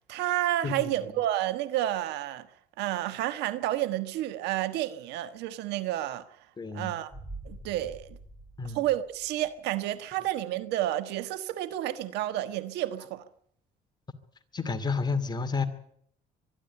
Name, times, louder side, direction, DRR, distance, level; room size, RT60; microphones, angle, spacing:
voice 1, 0.1-2.5 2.8-6.5 6.7-7.1 7.4-8.2 8.6-13.2, right 14 dB, 90° right, 1.4 m, -30 dB
voice 2, 6.6-6.9 8.6-8.8 14.5-15.7, left 4 dB, 25° left, 2.5 m, -30 dB
sound 1, 7.1-9.8 10.1-10.2, right 2 dB, ahead, 7.7 m, -46 dB
24.5 x 11.5 x 9.8 m
cardioid pair, 110°, 17 cm